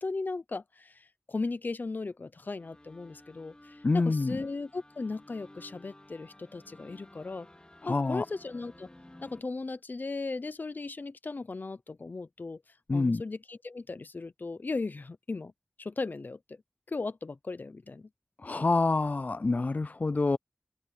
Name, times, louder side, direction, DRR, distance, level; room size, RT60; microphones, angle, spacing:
voice 1, 0.0-7.5 7.9-8.9 9.2-12.6 12.9-15.5 15.8-16.6 16.9-18.1, left 3 dB, 90° left, 0.7 m, -37 dB
sound 1, 2.6-9.4, left 1 dB, 30° left, 2.4 m, -54 dB
voice 2, 3.8-4.4 7.8-8.3 12.9-13.2 18.4-20.4, left 3 dB, 60° left, 0.3 m, -27 dB
wide cardioid pair, 50°, 3 cm